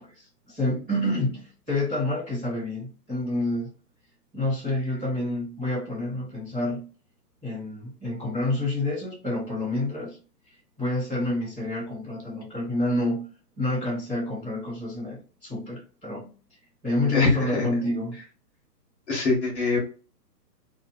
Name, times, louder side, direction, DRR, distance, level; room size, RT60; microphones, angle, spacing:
voice 1, 0.0-3.7 4.3-6.9 7.4-10.2 10.8-13.3 13.6-16.3 16.8-18.2, left 1 dB, 10° right, 0.8 m, -28 dB
voice 2, 17.1-17.7 19.1-19.8, left 3 dB, 45° left, 0.9 m, -24 dB
2.6 x 2.3 x 2.2 m
hypercardioid pair, 165°, 50 cm